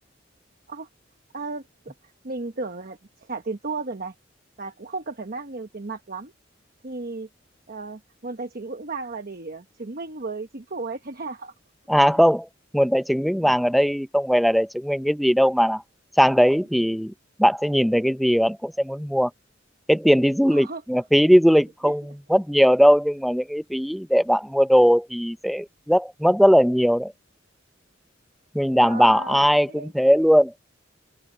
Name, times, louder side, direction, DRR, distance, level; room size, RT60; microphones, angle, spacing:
voice 1, 1.3-4.1 4.6-6.3 6.8-7.3 7.7-11.5 13.4-13.5 20.5-20.8 21.8-21.9 28.8-30.2, right 3 dB, 50° right, 1.1 m, -34 dB
voice 2, 11.9-12.5 12.7-15.8 16.2-17.1 17.4-19.3 19.9-27.1 28.5-30.5, equal, ahead, 0.6 m, -19 dB
open air
head